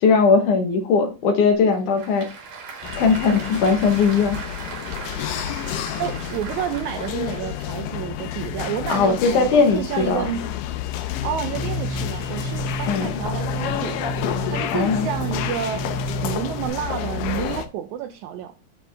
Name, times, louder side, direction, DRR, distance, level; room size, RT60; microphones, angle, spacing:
voice 1, 0.0-2.3 3.0-4.4 8.9-10.3 12.9-13.1 14.7-15.1, left 5 dB, 70° left, 2.5 m, -19 dB
Applause / Crowd, 1.5-7.7, right 5 dB, 55° right, 2.7 m, -38 dB
sound 1, 2.8-17.7, left 11 dB, 90° left, 2.4 m, -30 dB
voice 2, 6.0-10.5 11.2-15.8 16.2-18.5, right 10 dB, 80° right, 1.7 m, -30 dB
sound 2, 11.5-16.7, equal, 55° left, 3.1 m, -30 dB
9.9 x 4.4 x 3.4 m
omnidirectional pair, 3.8 m